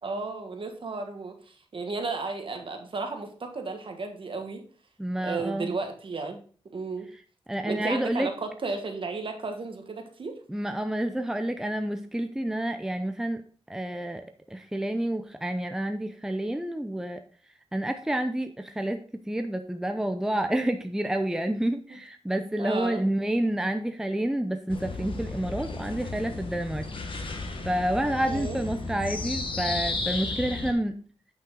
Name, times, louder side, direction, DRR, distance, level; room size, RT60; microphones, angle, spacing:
voice 1, 0.0-4.6 5.2-6.4 6.7-7.1 7.6-10.4 21.9-22.0 22.6-23.0 28.0-28.6, right 3 dB, 55° right, 5 dB, 1.4 m, -34 dB
voice 2, 5.0-5.7 7.5-8.3 10.5-13.4 13.7-17.2 17.7-26.9 27.6-31.0, right 1 dB, 5° right, 7 dB, 0.6 m, -29 dB
sound 1, 24.7-30.7, left 3 dB, 55° left, 1.3 m, -34 dB
9.2 x 5.5 x 3.8 m, 0.42 s
wide cardioid pair, 110°, 10 cm